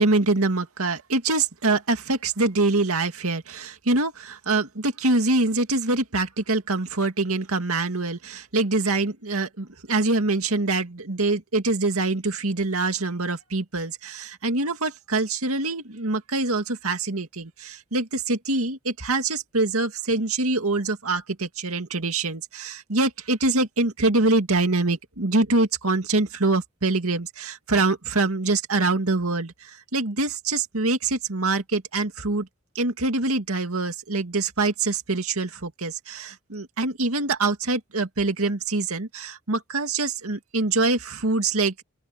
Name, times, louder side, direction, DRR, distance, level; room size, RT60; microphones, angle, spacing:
voice 1, 0.0-32.5 32.7-41.8, right 3 dB, 80° right, 2.2 m, -24 dB
open air
head